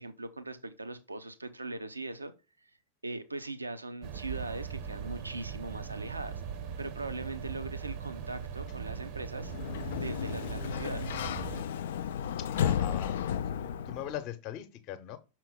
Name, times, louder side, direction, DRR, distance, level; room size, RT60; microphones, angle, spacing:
voice 1, 0.0-2.3 3.0-6.4 6.8-9.5 9.9-11.2, right 2 dB, 80° right, 0.6 m, -40 dB
sound 1, 4.0-11.6, right 7 dB, 45° right, 0.7 m, -40 dB
Sliding door, 9.4-14.2, left 9 dB, 60° left, 0.4 m, -33 dB
voice 2, 12.4-13.2 13.9-15.2, left 10 dB, 40° left, 0.8 m, -40 dB
6.0 x 4.5 x 3.6 m
figure-of-eight pair, 90°, 0 cm